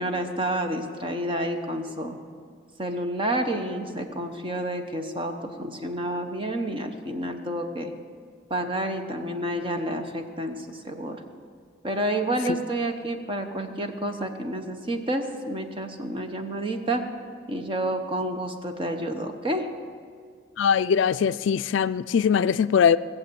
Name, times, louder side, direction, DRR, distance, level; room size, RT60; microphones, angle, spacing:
voice 1, 0.0-2.2 2.8-7.9 8.5-11.2 11.8-17.0 17.5-19.7, right 1 dB, 25° right, 5 dB, 1.0 m, -29 dB
voice 2, 20.6-23.0, left 7 dB, 70° left, 14 dB, 0.3 m, -21 dB
18.5 x 7.4 x 7.8 m, 2.1 s
head